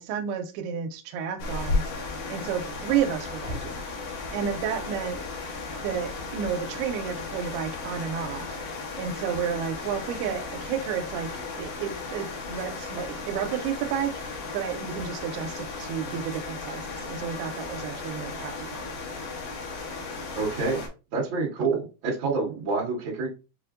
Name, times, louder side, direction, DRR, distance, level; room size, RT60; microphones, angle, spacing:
voice 1, 0.0-1.9 2.3-3.8 4.3-5.2 5.8-8.6 9.0-11.3 11.6-18.9, right 8 dB, 85° right, 7 dB, 2.5 m, -31 dB
sound 1, 1.4-20.9, left 3 dB, 70° left, 2.2 m, -35 dB
voice 2, 20.4-20.8 21.1-23.3, right 4 dB, 45° right, -4 dB, 1.7 m, -27 dB
6.9 x 2.5 x 2.5 m, 0.31 s
omnidirectional pair, 4.5 m